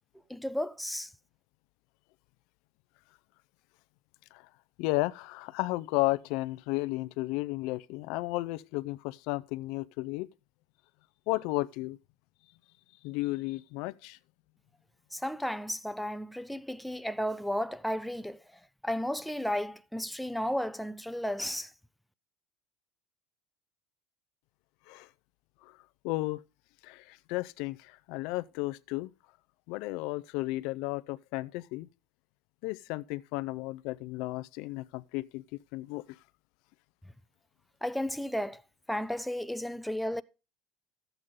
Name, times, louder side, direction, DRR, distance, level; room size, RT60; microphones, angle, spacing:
voice 1, 0.3-1.1 15.1-18.4 18.8-21.7 37.8-38.6 38.9-40.2, equal, ahead, 0.5 m, -33 dB
voice 2, 4.8-10.3 11.3-12.0 13.0-14.2 24.9-25.1 26.0-26.4 26.8-29.1 29.7-31.9 32.6-35.4 35.7-36.0, left 21 dB, 70° left, 0.4 m, -33 dB
12.0 x 8.0 x 3.6 m
supercardioid pair, 105°, 0 cm